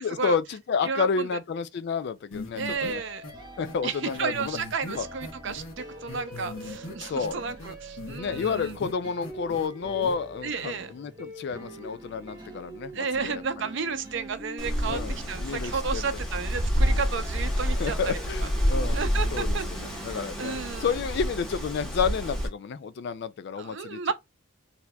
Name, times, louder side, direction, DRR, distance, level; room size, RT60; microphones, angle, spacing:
voice 1, 0.0-3.0 3.6-4.6 4.9-5.1 7.0-7.4 8.1-13.4 14.9-16.1 16.8-17.0 17.7-19.0 19.3-24.1, left 5 dB, 55° left, 0.3 m, -30 dB
voice 2, 0.8-1.3 2.5-3.2 3.8-3.9 4.2-8.8 10.4-10.9 12.9-15.0 15.3-18.5 18.9-19.7 19.9-20.1 20.4-20.9 23.6-24.1, right 5 dB, 60° right, 0.5 m, -32 dB
sound 1, 2.3-2.9 3.2-3.3 3.6-3.7 4.1-5.7 6.1-6.9 7.2-8.9 9.2-9.7 10.0-10.1, left 2 dB, 75° left, 1.0 m, -39 dB
sound 2, 2.7-21.0, right 1 dB, 20° right, 1.0 m, -45 dB
Wind, 14.6-22.5, equal, 5° left, 1.1 m, -28 dB
4.1 x 2.7 x 2.2 m
head